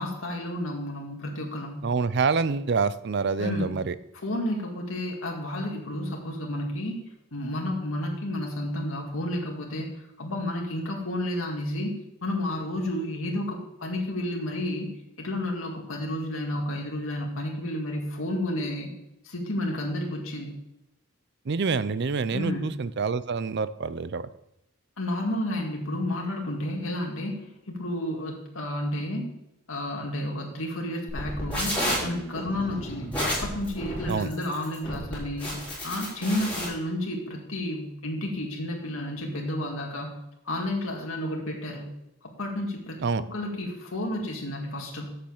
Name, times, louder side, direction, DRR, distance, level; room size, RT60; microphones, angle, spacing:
voice 1, 0.0-1.9 3.4-3.7 4.1-7.0 7.3-11.9 12.2-14.9 15.2-18.9 19.2-20.6 22.3-22.7 25.0-29.3 29.7-31.7 32.0-40.2 40.4-41.9 42.2-43.0 43.3-45.2, left 1 dB, 75° left, 0 dB, 2.0 m, -31 dB
voice 2, 1.8-3.9 21.5-24.2 34.1-34.3 43.0-43.2, right 4 dB, 55° right, 15 dB, 0.5 m, -26 dB
sound 1, 31.1-36.6, equal, 5° left, 4.2 m, -31 dB
7.5 x 6.9 x 7.3 m, 0.86 s
head